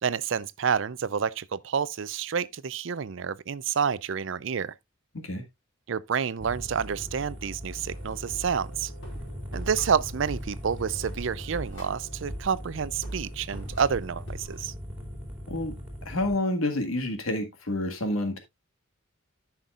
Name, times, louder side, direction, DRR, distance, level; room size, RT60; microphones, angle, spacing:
voice 1, 0.0-4.7 5.9-8.9 9.5-14.7, right 7 dB, 65° right, 0.5 m, -29 dB
sound 1, 6.4-16.4, equal, 5° right, 2.5 m, -40 dB
sound 2, 7.9-14.6, right 1 dB, 60° left, 4.3 m, -42 dB
voice 2, 16.0-18.4, left 1 dB, 80° left, 1.7 m, -28 dB
14.0 x 5.8 x 2.4 m
head